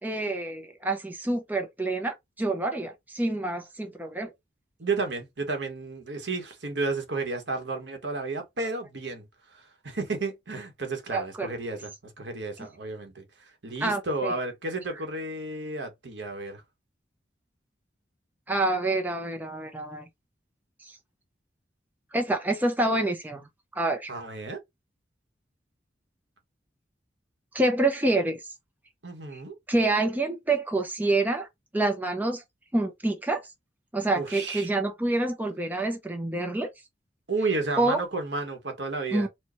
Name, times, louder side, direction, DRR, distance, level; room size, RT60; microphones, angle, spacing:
voice 1, 0.0-4.3 11.1-11.5 12.6-12.7 13.8-14.3 18.5-20.1 20.8-21.0 22.1-24.1 27.5-28.4 29.3-29.4 29.7-31.5 31.7-32.4 32.7-33.4 33.9-36.7 37.8-38.0 39.1-39.3, right 2 dB, 10° right, 0.5 m, -27 dB
voice 2, 4.8-16.6 24.1-24.6 29.0-29.5 34.1-34.7 37.3-39.3, right 3 dB, 75° right, 1.2 m, -32 dB
4.4 x 2.2 x 3.0 m
head